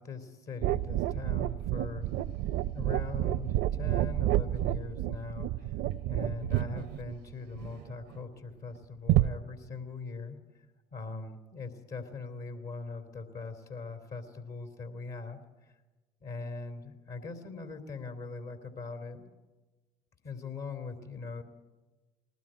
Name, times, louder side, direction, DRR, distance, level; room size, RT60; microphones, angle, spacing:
voice 1, 0.0-2.1 2.7-5.8 6.1-10.4 10.9-15.7 16.2-19.3 20.2-21.4, left 4 dB, 60° left, 6 dB, 3.0 m, -41 dB
sound 1, 0.6-8.2 9.1-9.3, right 14 dB, 75° right, 0.6 m, -30 dB
20.5 x 18.5 x 8.8 m, 1.2 s
hypercardioid pair, 60°, 18 cm